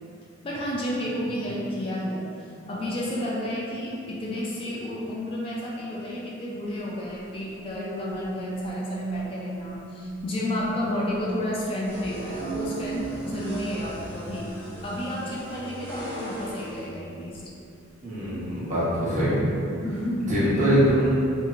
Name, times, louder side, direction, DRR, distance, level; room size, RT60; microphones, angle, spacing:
voice 1, 0.4-14.5 14.8-17.4 19.8-20.4, left 1 dB, 25° left, -5 dB, 0.3 m, -31 dB
sound 1, 7.1-17.7 18.2-18.5, right 2 dB, 90° right, 0.4 m, -38 dB
sound 2, 11.8-16.9, equal, 10° right, 0.8 m, -39 dB
voice 2, 18.0-19.5 20.3-21.1, equal, 40° right, -10 dB, 0.9 m, -23 dB
2.8 x 2.8 x 2.4 m, 2.6 s
head